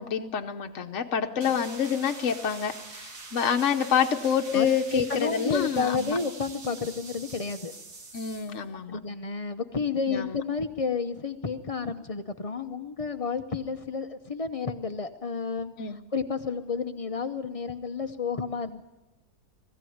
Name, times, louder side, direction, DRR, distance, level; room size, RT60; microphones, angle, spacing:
voice 1, 0.0-6.2 8.1-9.0 10.1-10.4 15.8-16.0, left 7 dB, 55° left, 4 dB, 1.1 m, -27 dB
sound 1, 1.4-8.6, right 3 dB, 75° right, 2.3 m, -44 dB
voice 2, 4.9-7.7 8.9-18.8, left 5 dB, 30° left, 9 dB, 0.6 m, -31 dB
20.0 x 15.5 x 9.4 m, 1.0 s
omnidirectional pair, 1.7 m